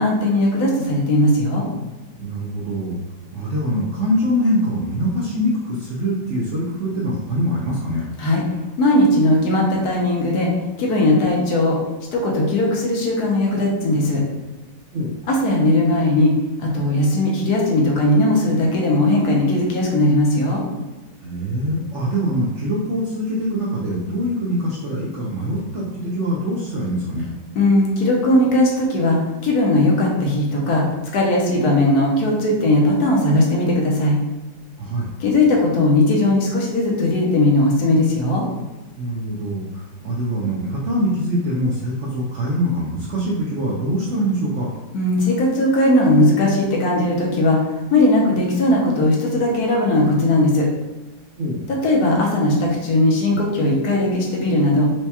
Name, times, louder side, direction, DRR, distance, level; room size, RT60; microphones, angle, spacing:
voice 1, 0.0-1.7 8.2-8.4 8.8-10.5 10.8-11.8 12.1-14.2 15.3-16.3 16.6-20.6 27.6-34.2 35.2-38.4 44.9-50.7 51.8-54.9, left 1 dB, 75° left, -2 dB, 1.2 m, -18 dB
voice 2, 2.2-3.0 3.3-8.1 14.9-15.1 21.2-27.3 34.8-35.1 39.0-44.7 51.4-51.7, equal, 65° right, -6 dB, 0.7 m, -23 dB
4.5 x 2.2 x 2.8 m, 1.1 s
omnidirectional pair, 1.8 m